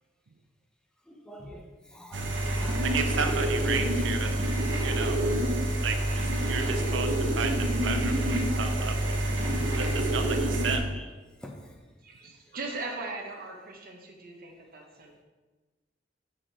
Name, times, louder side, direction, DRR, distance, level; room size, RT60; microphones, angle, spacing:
voice 1, 1.1-1.7 1.9-2.9 9.4-9.7 10.9-11.0 11.4-11.7, equal, 5° left, 1 dB, 1.0 m, -45 dB
sound 1, 2.1-10.8, right 1 dB, 70° right, 1.0 m, -27 dB
voice 2, 2.8-4.5 4.8-5.3 5.8-9.2 9.8-11.0, right 5 dB, 90° right, 6 dB, 0.6 m, -33 dB
voice 3, 12.0-15.2, right 3 dB, 55° right, 1 dB, 1.3 m, -39 dB
8.0 x 5.2 x 4.2 m, 1.3 s
head